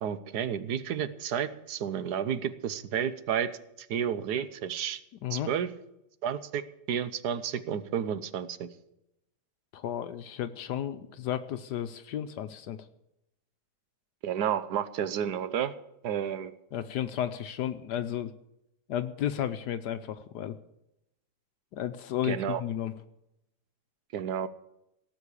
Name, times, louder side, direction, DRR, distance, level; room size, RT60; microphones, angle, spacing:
voice 1, 0.0-3.6 3.9-5.0 5.3-5.7 6.2-6.6 6.9-8.7 14.2-15.7 16.0-16.5 22.2-22.6 24.1-24.5, right 8 dB, 70° right, 13 dB, 1.4 m, -31 dB
voice 2, 9.7-12.9 16.7-18.3 18.9-20.6 21.7-22.9, left 10 dB, 80° left, 10 dB, 1.3 m, -33 dB
18.0 x 7.0 x 8.3 m, 0.86 s
omnidirectional pair, 1.8 m